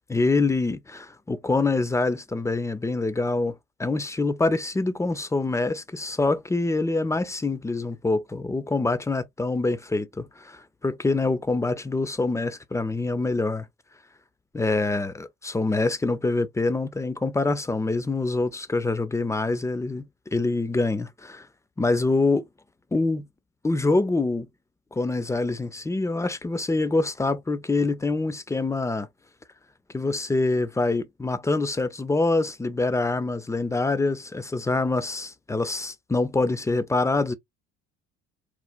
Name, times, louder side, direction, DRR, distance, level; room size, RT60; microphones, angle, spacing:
voice 1, 0.1-13.7 14.5-21.5 21.8-22.5 22.9-23.3 23.6-24.5 24.9-29.1 29.9-37.3, left 3 dB, 10° left, 0.4 m, -25 dB
3.1 x 2.1 x 2.4 m
supercardioid pair, 70°, 30 cm